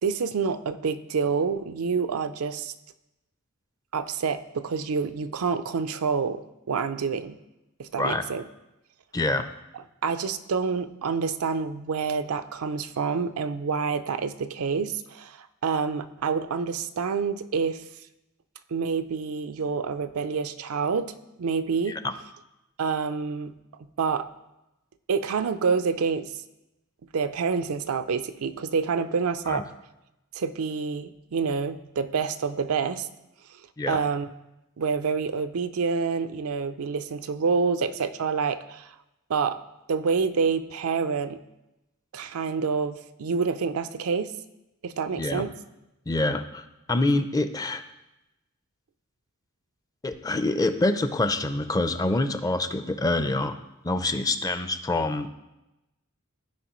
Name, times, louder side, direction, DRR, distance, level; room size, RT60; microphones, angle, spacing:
voice 1, 0.0-2.7 3.9-7.4 7.8-8.4 9.7-17.8 18.7-21.1 21.4-22.0 22.8-23.5 24.0-24.3 25.1-26.3 27.1-29.7 30.3-33.1 33.9-34.3 34.8-38.9 39.3-39.6 39.9-41.4 42.1-44.3 44.8-45.5, right 5 dB, 85° right, 11 dB, 0.5 m, -27 dB
voice 2, 9.1-9.5 21.9-22.1 29.5-29.6 33.8-34.0 45.2-45.5 46.1-47.8 50.0-53.6 53.8-55.3, left 2 dB, 15° left, 10 dB, 0.4 m, -26 dB
15.0 x 4.9 x 3.1 m, 0.95 s
head